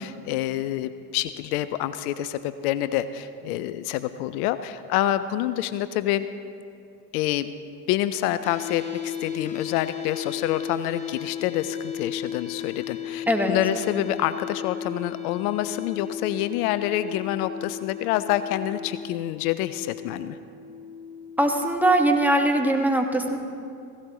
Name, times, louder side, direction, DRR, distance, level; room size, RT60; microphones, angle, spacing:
voice 1, 0.0-6.3 7.1-7.5 7.9-20.4, left 13 dB, 70° left, 13 dB, 0.6 m, -27 dB
sound 1, 8.4-22.4, left 9 dB, 15° left, 1.3 m, -35 dB
voice 2, 21.4-23.4, right 1 dB, 5° right, 3 dB, 1.5 m, -21 dB
16.5 x 16.0 x 3.0 m, 2.4 s
hypercardioid pair, 65°, 46 cm